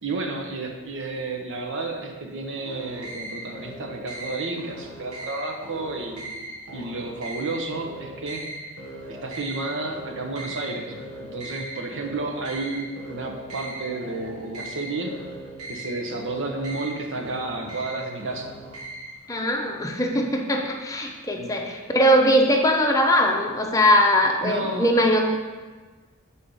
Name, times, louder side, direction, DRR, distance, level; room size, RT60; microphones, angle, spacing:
voice 1, 0.0-6.4 6.7-8.5 9.1-15.1 15.7-18.5 21.4-21.5 24.4-24.9, right 3 dB, 60° right, 2 dB, 0.9 m, -31 dB
sound 1, 2.6-19.3, right 1 dB, 90° right, 1.3 m, -39 dB
voice 2, 19.3-25.4, equal, 15° left, 1 dB, 0.7 m, -21 dB
6.5 x 4.2 x 5.5 m, 1.4 s
head